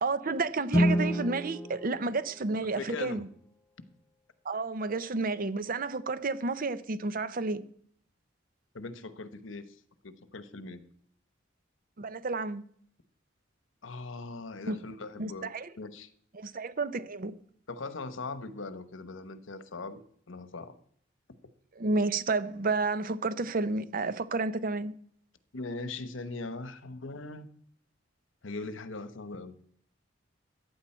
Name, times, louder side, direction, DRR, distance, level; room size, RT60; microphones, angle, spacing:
voice 1, 0.0-3.3 4.4-7.6 12.0-12.6 14.7-14.8 15.2-15.7 16.3-17.4 21.8-24.9, right 3 dB, 45° right, 0.7 m, -31 dB
Guitar, 0.7-3.3, equal, 15° left, 0.6 m, -30 dB
voice 2, 2.6-3.2 8.7-9.8 10.0-10.8 13.8-16.1 17.7-20.0 20.3-20.7 25.5-27.5 28.4-29.6, left 3 dB, 90° left, 1.0 m, -40 dB
14.5 x 9.4 x 4.4 m
head